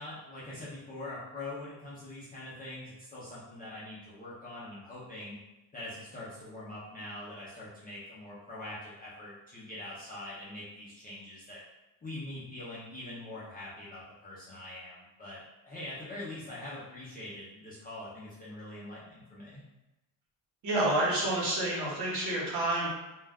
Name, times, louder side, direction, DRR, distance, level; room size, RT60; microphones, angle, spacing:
voice 1, 0.0-5.4 5.7-11.6 12.0-19.6, left 1 dB, 20° left, -10 dB, 0.3 m, -43 dB
voice 2, 20.6-22.9, right 1 dB, 60° right, -5 dB, 1.0 m, -29 dB
2.3 x 2.2 x 3.3 m, 0.98 s
cardioid pair, 175°, 46 cm